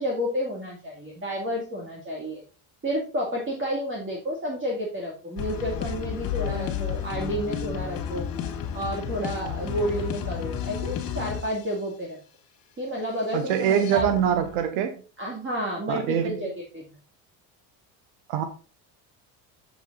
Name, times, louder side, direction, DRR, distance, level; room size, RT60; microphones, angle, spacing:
voice 1, 0.0-2.4 2.8-8.3 8.7-12.2 12.8-14.1 15.2-16.8, equal, 30° right, -2 dB, 2.4 m, -30 dB
sound 1, 5.4-11.6 13.3-14.6, left 9 dB, 55° left, 1.9 m, -32 dB
voice 2, 13.3-15.0 15.9-16.4 18.3-18.4, right 9 dB, 90° right, 9 dB, 1.1 m, -24 dB
7.4 x 7.3 x 3.9 m, 0.35 s
cardioid pair, 110°, 43 cm